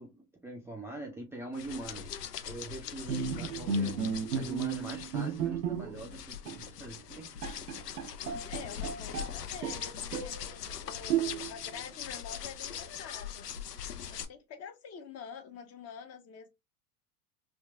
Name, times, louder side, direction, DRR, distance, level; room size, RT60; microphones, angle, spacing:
voice 1, 0.0-4.0 4.4-7.3, right 2 dB, 5° right, 0.4 m, -43 dB
sound 1, 1.5-14.2, left 9 dB, 90° left, 0.6 m, -42 dB
Bowed string instrument, 3.1-6.1 6.5-6.7 7.1-7.2 7.4-9.3 9.6-10.4 11.1-11.7, right 6 dB, 85° right, 0.6 m, -33 dB
voice 2, 8.5-13.5 14.1-16.5, left 6 dB, 35° left, 0.6 m, -47 dB
3.6 x 2.2 x 2.3 m
hypercardioid pair, 90°, 46 cm